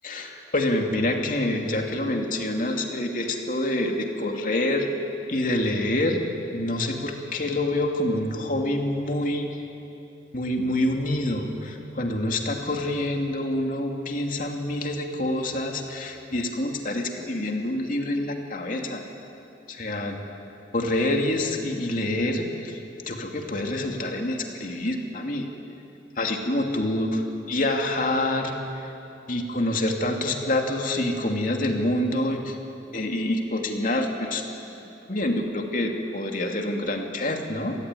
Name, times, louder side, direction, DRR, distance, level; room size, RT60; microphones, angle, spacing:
voice 1, 0.0-4.9 5.3-6.2 6.5-9.5 10.3-19.0 19.7-20.2 20.7-22.8 23.1-25.5 26.2-27.2 27.5-28.5 29.3-32.6 32.9-34.4 35.1-37.8, left 1 dB, 50° left, 2 dB, 2.7 m, -26 dB
26.5 x 17.5 x 9.9 m, 3.0 s
head